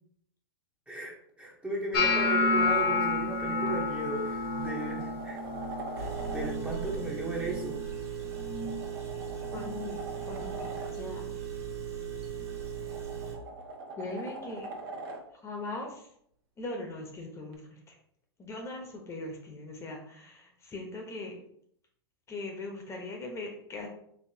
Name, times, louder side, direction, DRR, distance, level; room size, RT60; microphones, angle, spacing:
voice 1, 0.9-5.4 6.0-7.8, right 2 dB, 10° right, -2 dB, 1.0 m, -36 dB
sound 1, 1.9-8.0 8.3-8.8 9.2-9.7 10.3-10.6 12.3-12.4, left 3 dB, 65° left, 1.4 m, -31 dB
sound 2, 3.7-3.8 4.3-6.5 8.2-10.9 12.4-15.2 17.5-17.6, right 2 dB, 60° right, 0.9 m, -43 dB
Engine, 6.0-13.4, right 9 dB, 75° right, 1.6 m, -38 dB
voice 2, 9.5-11.2 14.0-14.7 15.4-16.1 16.6-17.6 17.9-18.0 18.4-21.4 22.3-23.9, left 2 dB, 20° left, 2 dB, 1.0 m, -40 dB
4.8 x 2.8 x 2.8 m, 0.68 s
hypercardioid pair, 105°, 13 cm